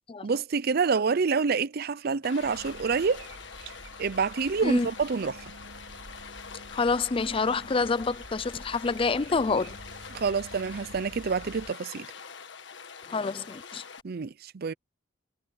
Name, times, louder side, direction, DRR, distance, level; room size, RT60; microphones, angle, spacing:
voice 1, 0.2-3.2 4.0-5.5 10.1-12.1 14.0-14.7, right 5 dB, 50° right, 0.5 m, -27 dB
Stream, 2.2-14.0, left 6 dB, 65° left, 1.6 m, -45 dB
sound 1, 2.4-11.7, right 2 dB, 90° right, 5.0 m, -48 dB
voice 2, 6.7-9.8 13.1-13.8, left 4 dB, 30° left, 0.4 m, -27 dB
head